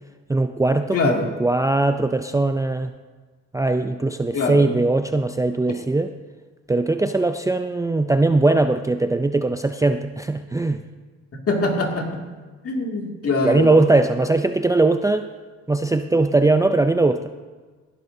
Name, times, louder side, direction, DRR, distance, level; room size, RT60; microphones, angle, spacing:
voice 1, 0.3-2.9 3.5-6.1 6.7-10.8 13.4-15.3 15.7-17.3, right 2 dB, 10° right, 8 dB, 0.4 m, -20 dB
voice 2, 0.9-1.3 4.3-4.7 11.5-12.2 12.6-13.7, left 3 dB, 50° left, 1 dB, 2.5 m, -23 dB
18.5 x 11.0 x 2.7 m, 1.4 s
cardioid pair, 90°, 30 cm